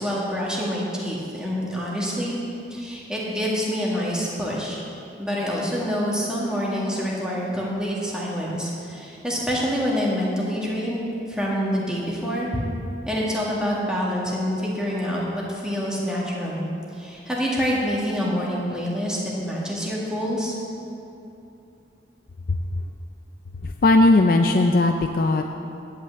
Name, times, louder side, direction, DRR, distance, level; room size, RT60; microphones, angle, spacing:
voice 1, 0.0-2.4 2.7-4.8 5.2-11.0 11.3-12.5 13.1-16.7 16.9-20.5, equal, 5° right, -5 dB, 1.9 m, -26 dB
voice 2, 23.8-25.4, left 2 dB, 50° left, 4 dB, 0.4 m, -17 dB
10.5 x 6.0 x 8.1 m, 2.8 s
head